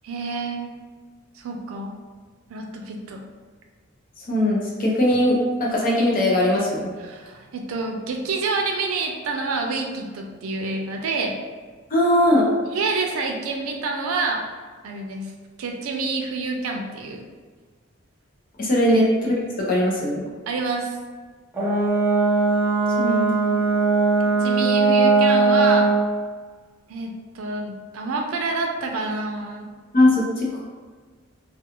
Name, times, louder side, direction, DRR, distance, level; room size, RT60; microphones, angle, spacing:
voice 1, 0.0-0.7 1.4-1.9 2.5-3.2 7.0-11.4 12.7-14.4 14.8-15.3 15.6-17.2 18.9-19.0 20.5-20.9 24.4-25.9 26.9-29.7, right 3 dB, 85° right, 2 dB, 0.4 m, -28 dB
voice 2, 4.3-6.9 11.9-12.5 18.6-19.3 19.7-20.2 23.0-23.2 29.9-30.5, left 1 dB, 45° left, -3 dB, 0.6 m, -19 dB
Brass instrument, 21.5-26.0, right 3 dB, 10° right, 0.6 m, -19 dB
2.4 x 2.2 x 2.8 m, 1.5 s
head